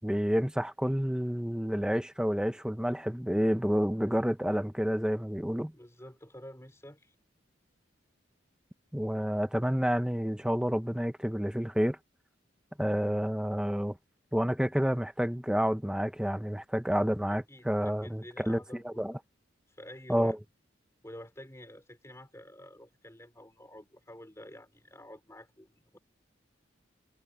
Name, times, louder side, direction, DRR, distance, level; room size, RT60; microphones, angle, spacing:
voice 1, 0.0-5.7 8.9-12.0 12.8-14.0 14.3-19.1 20.1-20.4, equal, 5° right, 0.7 m, -29 dB
voice 2, 5.7-7.1 17.5-19.2 19.7-20.4 21.0-26.0, left 1 dB, 15° left, 3.3 m, -49 dB
head